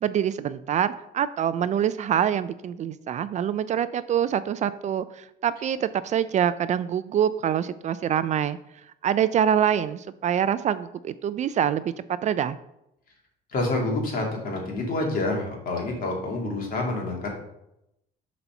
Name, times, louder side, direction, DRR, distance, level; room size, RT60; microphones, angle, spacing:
voice 1, 0.0-8.6 9.0-11.9 12.2-12.6, right 9 dB, 45° right, 14 dB, 0.4 m, -25 dB
voice 2, 13.5-17.3, left 2 dB, 55° left, 0 dB, 2.3 m, -28 dB
6.8 x 4.2 x 5.7 m, 0.83 s
cardioid pair, 110°, 17 cm